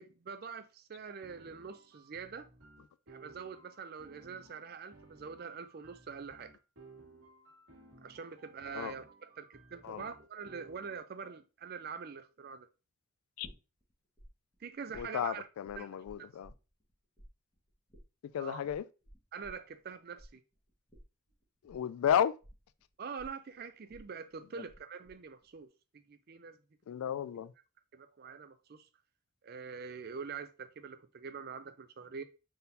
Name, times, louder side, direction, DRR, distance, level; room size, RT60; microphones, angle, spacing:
voice 1, 0.0-2.5 3.1-6.5 8.0-12.7 14.6-15.5 15.8-15.9 18.4-18.6 19.3-20.4 23.0-26.6 27.9-28.9 29.4-32.2, right 6 dB, 45° right, 0.4 m, -45 dB
sound 1, 1.1-11.0, right 3 dB, 70° right, 1.6 m, -58 dB
sound 2, 13.4-14.3 14.5-16.9 17.2-24.8 25.1-25.6, equal, 20° left, 1.5 m, -56 dB
voice 2, 14.9-16.5 18.3-18.9 21.6-22.3 24.6-24.7 26.9-27.5, left 9 dB, 85° left, 0.3 m, -33 dB
4.1 x 3.8 x 2.6 m
head